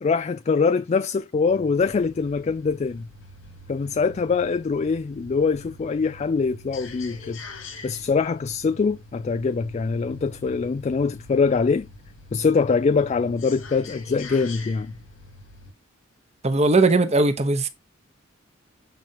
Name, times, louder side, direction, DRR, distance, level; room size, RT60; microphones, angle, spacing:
voice 1, 0.0-3.1 3.7-7.4 7.8-11.9 12.3-14.9, left 5 dB, 35° left, 0.3 m, -23 dB
sound 1, 1.5-15.7, left 3 dB, 85° left, 3.4 m, -44 dB
voice 2, 16.4-17.7, right 3 dB, 35° right, 1.1 m, -19 dB
9.2 x 5.1 x 3.0 m
head